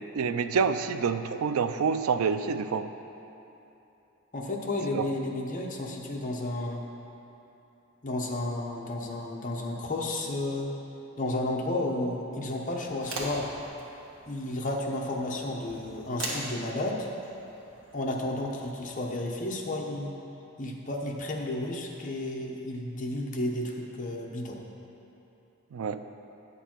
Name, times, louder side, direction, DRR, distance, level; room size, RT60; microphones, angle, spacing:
voice 1, 0.1-2.9 4.9-5.1 25.7-26.0, right 5 dB, 85° right, 11 dB, 0.4 m, -27 dB
voice 2, 4.3-6.8 8.0-10.7 11.2-13.5 14.3-17.1 17.9-20.1 20.6-24.6, left 1 dB, 40° left, 0 dB, 0.9 m, -32 dB
sound 1, 12.8-19.2, right 1 dB, 70° right, 1.6 m, -42 dB
9.4 x 7.0 x 4.4 m, 3.0 s
head